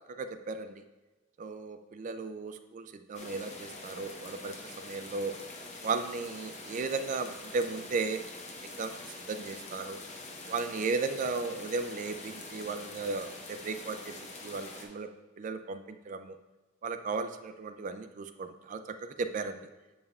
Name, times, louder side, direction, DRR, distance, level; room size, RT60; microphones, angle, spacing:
voice 1, 0.2-0.8 1.4-5.4 5.8-8.2 8.8-10.0 10.5-15.1 15.4-16.4 16.8-19.6, right 4 dB, 40° right, 9 dB, 0.3 m, -35 dB
sound 1, 3.1-14.9, left 2 dB, 35° left, 0.7 m, -45 dB
7.9 x 5.3 x 2.3 m, 1.2 s
head